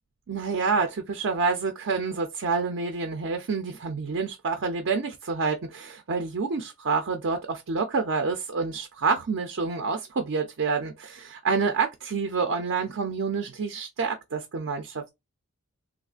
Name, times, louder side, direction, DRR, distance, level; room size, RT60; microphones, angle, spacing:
voice 1, 0.3-15.1, right 4 dB, 55° right, 0.5 m, -28 dB
3.4 x 2.4 x 2.3 m
head